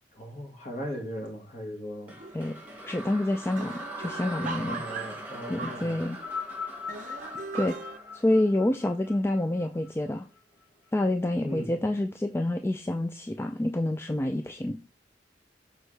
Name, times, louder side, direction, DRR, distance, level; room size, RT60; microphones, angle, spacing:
voice 1, 0.1-2.2 4.5-5.9 11.4-11.7, equal, 40° left, 1.8 m, -38 dB
sound 1, 2.1-9.2, right 1 dB, 10° right, 1.7 m, -42 dB
sound 2, 2.2-2.6 2.9-3.0 3.3-6.4 6.9-8.0, right 4 dB, 45° right, 0.6 m, -40 dB
voice 2, 2.8-4.8 5.5-6.2 7.5-7.8 8.1-10.3 10.9-14.8, left 1 dB, 15° left, 0.3 m, -28 dB
sound 3, 6.1-10.6 11.5-11.6, left 6 dB, 65° left, 2.3 m, -40 dB
6.4 x 5.1 x 3.3 m
head